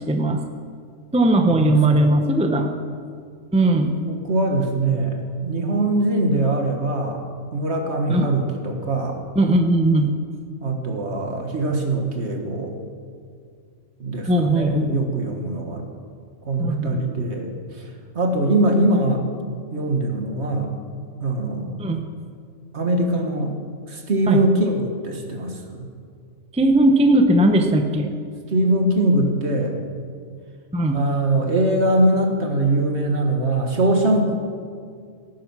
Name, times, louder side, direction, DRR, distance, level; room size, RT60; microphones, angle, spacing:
voice 1, 0.1-0.4 1.1-2.7 3.5-4.0 8.1-8.3 9.3-10.1 14.3-15.0 16.6-17.0 21.8-22.0 24.3-24.4 26.5-28.1 30.7-31.0, right 1 dB, 5° right, 4 dB, 0.7 m, -18 dB
voice 2, 1.5-2.2 4.0-7.2 7.5-9.2 10.6-12.8 14.0-15.9 16.5-17.9 18.2-19.2 19.7-20.8 21.2-21.8 22.7-23.5 23.9-25.9 28.5-29.8 30.9-34.3, right 1 dB, 55° right, 3 dB, 1.9 m, -22 dB
18.0 x 9.5 x 6.1 m, 2.2 s
omnidirectional pair, 1.4 m